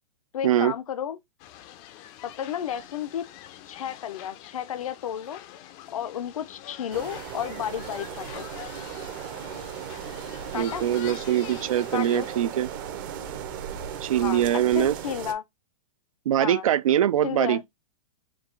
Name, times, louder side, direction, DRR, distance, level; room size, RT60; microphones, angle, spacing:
voice 1, 0.3-1.2 2.2-3.3 3.7-5.4 5.9-8.5 10.5-10.9 11.9-12.3 14.1-15.4 16.4-16.6 17.2-17.6, left 9 dB, 80° left, 0.6 m, -32 dB
sound 1, 1.4-12.4, left 12 dB, 25° left, 0.4 m, -45 dB
sound 2, 6.9-15.3, right 9 dB, 40° right, 0.7 m, -37 dB
voice 2, 10.5-12.7 14.0-14.9 16.3-17.6, right 11 dB, 75° right, 0.5 m, -23 dB
4.6 x 2.3 x 3.7 m
hypercardioid pair, 155°, 18 cm